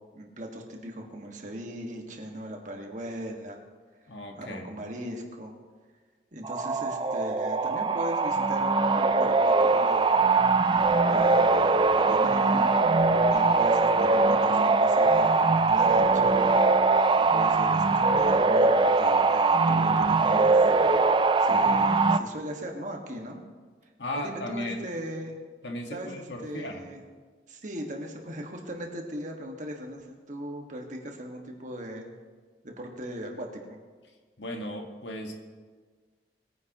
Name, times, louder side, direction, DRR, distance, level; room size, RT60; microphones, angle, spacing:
voice 1, 0.1-3.6 4.4-5.5 6.3-10.2 11.0-12.7 13.2-16.5 17.2-17.8 18.1-20.7 21.1-23.4 24.1-25.4 25.9-27.0 27.5-32.1 32.6-33.8, right 1 dB, 45° right, 1 dB, 1.8 m, -39 dB
voice 2, 4.1-4.7 24.0-24.8 25.6-26.8 34.4-35.3, left 1 dB, 85° left, 2 dB, 1.7 m, -36 dB
sound 1, 6.4-22.2, right 3 dB, 25° right, 0.4 m, -22 dB
21.0 x 10.0 x 3.0 m, 1.5 s
head